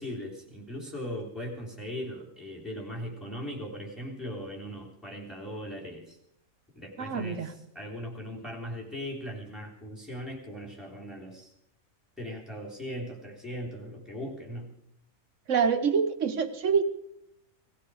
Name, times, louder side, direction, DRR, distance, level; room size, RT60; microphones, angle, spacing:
voice 1, 0.0-6.2 6.8-11.5 12.2-14.7, equal, ahead, 0 dB, 3.5 m, -39 dB
voice 2, 7.0-7.5 15.5-16.8, right 6 dB, 65° right, 8 dB, 1.4 m, -26 dB
19.0 x 15.0 x 5.0 m, 0.80 s
omnidirectional pair, 1.4 m